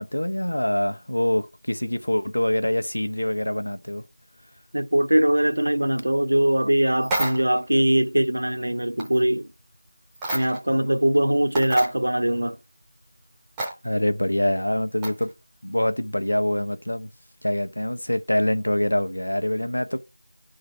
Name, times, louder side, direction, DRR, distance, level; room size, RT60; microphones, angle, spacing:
voice 1, 0.0-4.0 13.8-15.3 15.6-17.1 17.4-20.0, left 1 dB, 90° left, 0.9 m, -25 dB
voice 2, 4.7-9.5 10.3-12.6, right 1 dB, 80° right, 1.0 m, -21 dB
sound 1, 7.0-7.6 9.0-9.2 10.1-10.7 11.1-11.2 11.5-11.9 13.6-13.7 15.0-15.3, right 2 dB, 5° right, 0.6 m, -29 dB
11.0 x 3.9 x 3.3 m
figure-of-eight pair, 175°, 0 cm